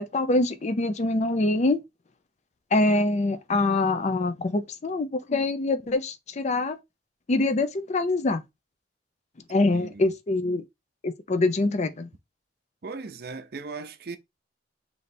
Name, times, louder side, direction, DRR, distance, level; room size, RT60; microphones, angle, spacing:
voice 1, 0.0-1.8 2.7-6.8 7.3-8.4 9.5-10.6 11.0-12.1, left 2 dB, 40° left, 0.5 m, -24 dB
voice 2, 9.7-10.1 12.8-14.2, right 4 dB, 55° right, 0.6 m, -38 dB
3.2 x 2.7 x 4.1 m
head